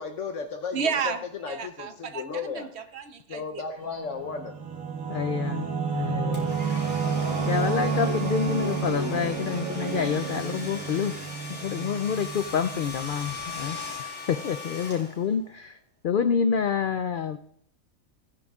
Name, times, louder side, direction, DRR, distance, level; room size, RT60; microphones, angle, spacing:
voice 1, 0.0-0.9 1.4-2.7 3.3-4.5 5.1-5.2, left 5 dB, 65° left, 4 dB, 1.1 m, -34 dB
voice 2, 0.7-3.6, right 5 dB, 55° right, 9 dB, 1.0 m, -32 dB
Singing / Musical instrument, 4.0-13.2, right 5 dB, 80° right, 1.9 m, -30 dB
voice 3, 5.1-6.9 7.4-11.2 11.5-15.8 16.0-17.4, left 7 dB, 90° left, 10 dB, 0.4 m, -28 dB
Domestic sounds home sounds, 6.3-15.5, left 3 dB, 5° left, 3.5 m, -39 dB
17.0 x 9.5 x 2.4 m, 0.69 s
omnidirectional pair, 1.4 m